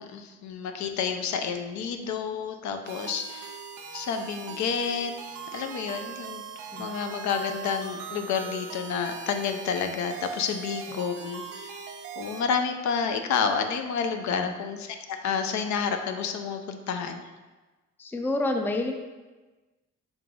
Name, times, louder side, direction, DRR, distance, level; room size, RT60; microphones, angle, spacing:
voice 1, 0.0-3.6 3.9-5.1 5.5-6.4 6.8-11.8 12.2-17.2, left 6 dB, 70° left, 6 dB, 0.5 m, -30 dB
sound 1, 2.9-12.4, right 7 dB, 90° right, 0.6 m, -40 dB
voice 2, 18.0-18.9, left 2 dB, 5° left, 4 dB, 0.3 m, -29 dB
3.8 x 3.7 x 3.1 m, 1.2 s
cardioid pair, 90°, 30 cm